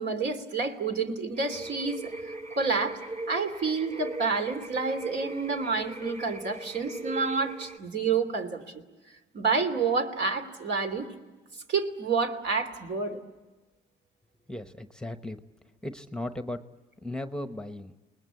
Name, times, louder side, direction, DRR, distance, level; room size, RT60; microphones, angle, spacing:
voice 1, 0.0-2.1 2.6-3.0 3.3-8.8 9.3-11.1 11.7-13.2, right 4 dB, 60° right, 6 dB, 2.9 m, -29 dB
sound 1, 1.3-7.8, right 2 dB, 35° right, 3.1 m, -39 dB
voice 2, 14.5-15.4 15.8-16.6 17.0-17.9, left 1 dB, 5° left, 9 dB, 1.1 m, -36 dB
28.5 x 20.0 x 8.5 m, 1.2 s
cardioid pair, 90°, 20 cm